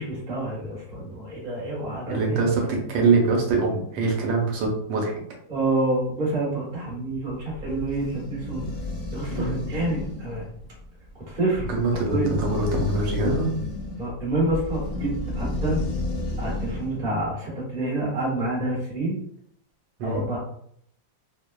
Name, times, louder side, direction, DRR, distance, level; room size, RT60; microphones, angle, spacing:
voice 1, 0.0-2.4 2.8-2.9 5.5-8.6 9.1-10.4 11.1-11.7 12.1-12.3 14.0-15.8 16.4-19.2 20.0-20.4, right 2 dB, 30° right, -6 dB, 0.9 m, -28 dB
voice 2, 2.1-5.1 9.3-9.6 11.7-13.6 20.0-20.2, right 3 dB, 80° right, -1 dB, 1.3 m, -23 dB
sound 1, 7.3-17.0, left 2 dB, 60° left, 0.6 m, -32 dB
3.1 x 2.0 x 2.2 m, 0.67 s
omnidirectional pair, 2.0 m